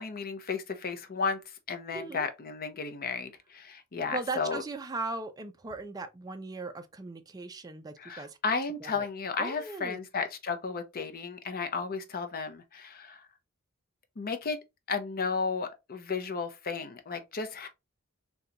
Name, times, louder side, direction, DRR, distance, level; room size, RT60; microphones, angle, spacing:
voice 1, 0.0-4.6 8.0-13.3 14.2-14.6 14.9-17.7, left 5 dB, 40° left, 0.6 m, -34 dB
voice 2, 1.9-2.3 4.1-8.4 8.8-9.1 9.4-10.0, right 3 dB, 15° right, 0.4 m, -38 dB
3.8 x 2.3 x 2.7 m
head